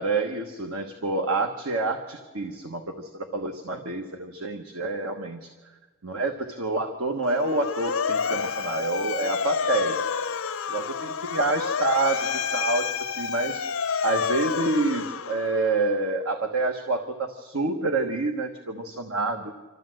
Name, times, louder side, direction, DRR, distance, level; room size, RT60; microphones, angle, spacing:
voice 1, 0.0-5.5 6.0-10.1 10.7-13.6 14.0-19.6, right 3 dB, 90° right, 5 dB, 1.3 m, -28 dB
Motor vehicle (road) / Siren, 7.2-15.8, left 6 dB, 75° left, 0.8 m, -29 dB
26.5 x 13.5 x 7.8 m, 1.3 s
head